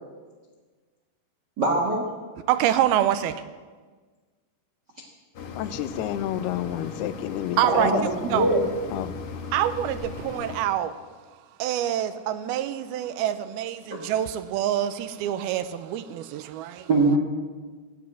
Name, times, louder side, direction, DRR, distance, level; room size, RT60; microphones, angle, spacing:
voice 1, 1.6-2.0 7.7-8.7 16.9-17.2, right 2 dB, 65° right, 1.0 m, -22 dB
voice 2, 2.5-3.4 7.6-7.9 8.3-8.5 9.5-11.0 11.6-16.9, right 11 dB, 80° right, 2.4 m, -26 dB
sound 1, 5.3-10.6, left 4 dB, 65° left, 1.4 m, -37 dB
voice 3, 5.6-8.0 8.9-9.1, left 12 dB, 85° left, 2.7 m, -30 dB
14.5 x 8.3 x 9.9 m
omnidirectional pair, 4.6 m